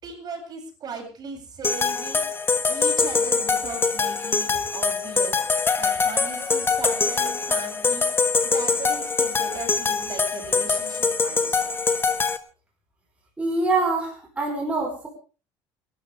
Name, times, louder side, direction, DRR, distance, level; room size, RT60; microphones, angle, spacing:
voice 1, 0.0-2.2 2.7-5.4 5.8-8.1 8.4-11.8, right 5 dB, 40° right, 1 dB, 8.0 m, -38 dB
sound 1, 1.6-12.4, left 4 dB, 20° left, 1.4 m, -23 dB
voice 2, 13.4-15.1, right 3 dB, 15° right, -1 dB, 5.0 m, -25 dB
29.0 x 12.5 x 3.6 m, 0.36 s
cardioid pair, 125°, 10 cm